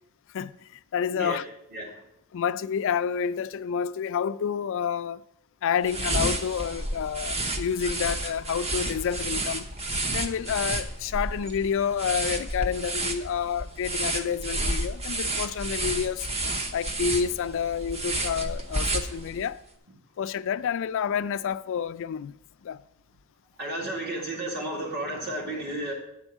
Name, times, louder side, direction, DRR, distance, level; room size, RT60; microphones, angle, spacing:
voice 1, 0.9-1.4 2.3-5.2 5.6-9.7 10.1-16.3 16.7-19.6 20.2-22.4 22.6-22.8, left 7 dB, 60° left, 0.3 m, -29 dB
sound 1, 5.8-19.5, right 1 dB, 30° right, 0.8 m, -31 dB
voice 2, 23.6-25.9, right 1 dB, 45° right, 2.0 m, -32 dB
9.2 x 4.5 x 7.0 m
head